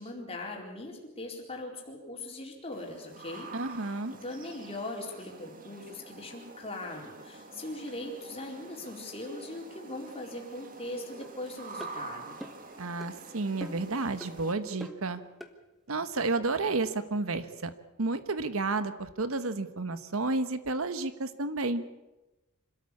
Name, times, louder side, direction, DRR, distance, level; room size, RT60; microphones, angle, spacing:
voice 1, 0.0-3.5 3.8-12.4, left 2 dB, 25° left, 0 dB, 4.3 m, -40 dB
sound 1, 2.7-14.5, right 3 dB, 40° right, 1.8 m, -47 dB
voice 2, 3.5-4.1 12.8-15.2 15.9-17.7 18.0-21.8, right 3 dB, 65° right, 12 dB, 1.1 m, -31 dB
sound 2, 11.2-11.3 11.8-12.0 12.4-12.7 13.0-13.1 13.6-13.9 14.2-14.3 14.8-15.0 15.4-15.5, equal, ahead, 1.4 m, -43 dB
26.0 x 13.0 x 8.5 m, 1.0 s
head